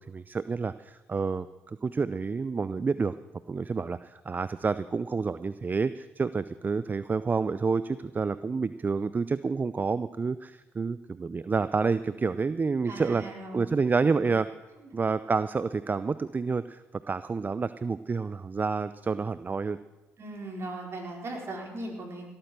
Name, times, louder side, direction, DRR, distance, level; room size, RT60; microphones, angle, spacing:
voice 1, 0.0-3.2 3.5-13.2 13.5-14.5 14.9-19.8, right 4 dB, 30° right, 15 dB, 0.5 m, -29 dB
voice 2, 12.8-13.8 20.2-22.2, right 2 dB, 45° right, 0 dB, 4.4 m, -38 dB
17.0 x 9.0 x 6.7 m, 1.1 s
supercardioid pair, 60°, 6 cm